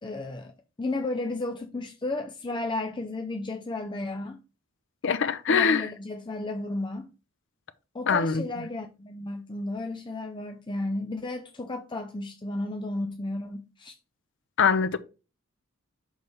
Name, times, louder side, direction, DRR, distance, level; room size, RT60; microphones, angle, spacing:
voice 1, 0.0-0.5 0.8-4.4 5.5-7.1 7.9-14.0, left 2 dB, 20° left, 0.5 m, -33 dB
voice 2, 5.0-5.9 8.1-8.4 14.6-15.0, left 6 dB, 65° left, 0.6 m, -23 dB
6.3 x 3.3 x 5.5 m
head